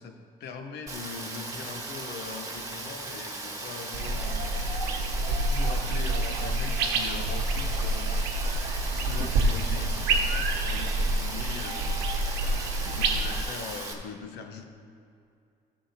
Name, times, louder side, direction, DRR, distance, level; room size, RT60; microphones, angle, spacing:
voice 1, 0.0-4.4 5.2-8.1 8.9-12.0 12.8-14.7, left 5 dB, 80° left, 6 dB, 0.9 m, -41 dB
Rain, 0.9-13.9, right 2 dB, 20° right, 1.3 m, -38 dB
sound 1, 3.9-13.4, right 2 dB, 90° right, 0.9 m, -28 dB
14.0 x 7.5 x 2.8 m, 2.5 s
cardioid pair, 110°, 17 cm